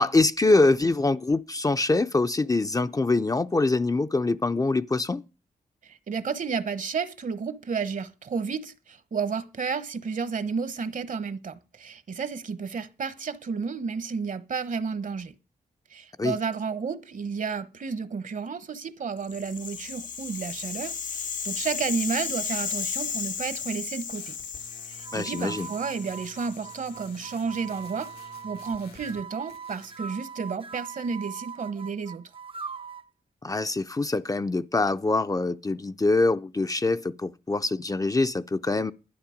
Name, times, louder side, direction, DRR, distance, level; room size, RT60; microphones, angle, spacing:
voice 1, 0.0-5.2 16.2-16.4 25.1-25.7 33.4-38.9, left 3 dB, 25° left, 0.5 m, -24 dB
voice 2, 5.8-15.3 15.9-24.4 24.9-32.3, right 5 dB, 60° right, 1.1 m, -32 dB
Rattle (instrument), 19.2-27.4, left 6 dB, 60° left, 0.8 m, -34 dB
sound 1, 24.1-29.2 29.5-30.0, left 4 dB, 90° left, 1.8 m, -51 dB
sound 2, 24.9-33.1, right 6 dB, 35° right, 0.6 m, -41 dB
11.5 x 10.0 x 5.1 m
cardioid pair, 75°, 16 cm